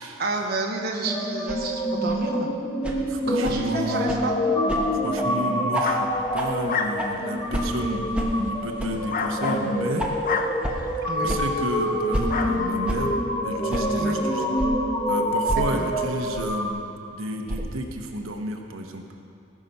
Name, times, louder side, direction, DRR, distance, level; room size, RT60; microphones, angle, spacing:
voice 1, 0.2-2.5 3.3-4.3 11.0-11.3 14.0-14.2 15.7-15.9, right 3 dB, 45° right, 1 dB, 0.9 m, -30 dB
sound 1, 1.0-16.7, left 1 dB, 20° left, 0.9 m, -26 dB
sound 2, 1.5-1.6 2.1-2.2 2.8-3.0 3.4-3.6 4.1-4.2 4.7-4.8 5.1-5.3 5.7-5.9 6.3-6.5 7.0-7.1 7.5-7.7 8.1-8.3 8.8-8.9 9.4-9.5 10.0-10.1 10.6-10.7 11.3-11.4 12.1-12.3 12.9-13.0 13.7-13.8 14.6-14.7 15.5-15.6 16.3-16.4 17.5-17.7, equal, 5° right, 1.1 m, -29 dB
voice 2, 3.0-4.2 5.0-8.0 8.5-10.1 11.2-13.1 13.4-14.4 15.1-16.8 17.1-19.0, right 1 dB, 70° right, 3 dB, 1.0 m, -31 dB
Dogs barking, 5.8-11.3 11.8-12.0 12.3-12.8, left 4 dB, 40° left, 0.7 m, -32 dB
18.0 x 6.1 x 5.4 m, 2.5 s
head